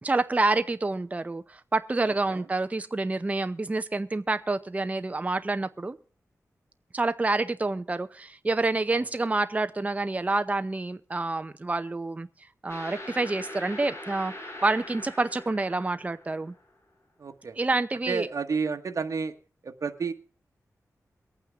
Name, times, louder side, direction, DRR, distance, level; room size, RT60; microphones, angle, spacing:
voice 1, 0.0-6.0 6.9-12.3 12.6-14.3 14.6-16.5 17.6-18.3, right 2 dB, 25° right, 11 dB, 0.7 m, -28 dB
sound 1, 12.7-16.6, left 1 dB, 45° left, 4.1 m, -42 dB
voice 2, 17.2-17.6 18.1-19.3 19.6-20.1, right 5 dB, 65° right, 6 dB, 1.4 m, -31 dB
23.0 x 8.9 x 3.6 m, 0.37 s
wide cardioid pair, 105°, 6 cm